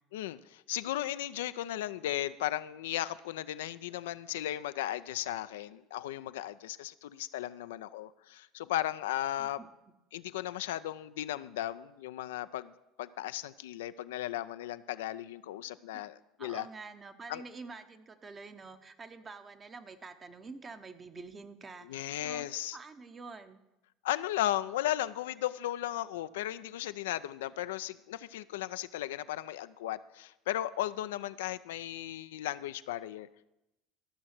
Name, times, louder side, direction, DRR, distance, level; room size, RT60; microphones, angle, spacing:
voice 1, 0.1-9.6 10.1-12.7 13.0-16.7 17.3-17.4 21.8-22.8 24.0-33.5, left 13 dB, 75° left, 13 dB, 0.3 m, -36 dB
voice 2, 16.4-22.4 22.7-23.6, right 4 dB, 30° right, 9 dB, 0.9 m, -47 dB
13.5 x 6.4 x 6.0 m, 0.92 s
hypercardioid pair, 70°, 0 cm